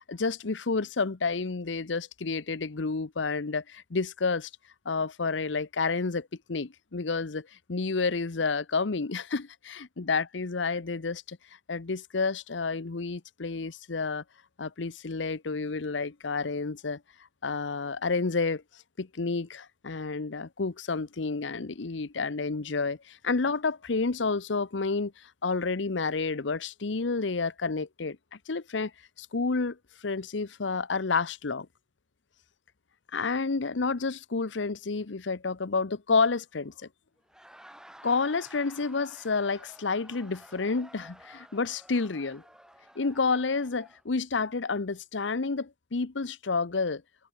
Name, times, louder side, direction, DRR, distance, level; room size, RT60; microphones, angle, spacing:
voice 1, 0.1-4.5 4.9-11.4 11.7-14.2 14.6-17.0 17.4-18.6 19.0-25.1 25.4-28.9 29.2-29.8 30.0-31.7 33.1-36.7 38.0-42.4 43.0-47.0, left 4 dB, 75° left, 0.8 m, -30 dB
Laughter, 37.2-44.0, right 1 dB, 5° right, 3.3 m, -53 dB
head